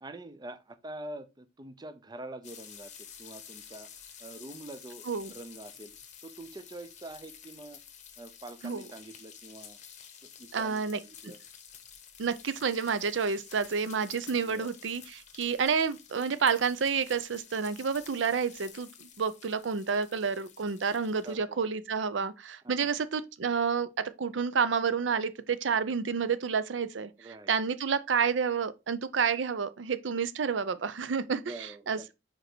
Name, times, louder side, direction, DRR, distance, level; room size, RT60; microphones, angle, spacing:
voice 1, 0.0-3.9 4.2-5.9 6.2-7.8 8.2-9.8 10.2-11.4 14.4-14.7 18.3-18.4 21.2-21.6 22.6-22.9 25.9-26.0 27.2-27.5 31.3-32.1, right 1 dB, 20° right, 0.5 m, -45 dB
sound 1, 2.4-21.4, left 8 dB, 40° left, 1.0 m, -51 dB
voice 2, 10.5-11.0 12.2-27.1 27.5-31.5 31.9-32.1, right 6 dB, 85° right, 0.5 m, -29 dB
4.9 x 4.5 x 4.4 m
head